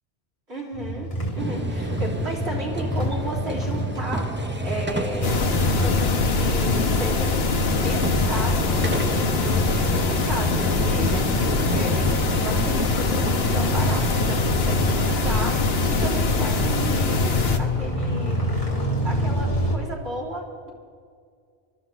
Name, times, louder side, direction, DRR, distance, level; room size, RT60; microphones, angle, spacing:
voice 1, 0.5-1.1 1.4-7.3 7.7-18.4 19.0-20.7, right 1 dB, 75° right, -2 dB, 4.1 m, -33 dB
sound 1, 0.7-19.8, left 1 dB, 30° left, 2.4 m, -29 dB
sound 2, 1.4-18.9, right 1 dB, 10° right, 0.8 m, -33 dB
sound 3, 5.2-17.6, left 3 dB, 65° left, 1.3 m, -23 dB
24.5 x 13.0 x 4.0 m, 2.2 s
omnidirectional pair, 1.1 m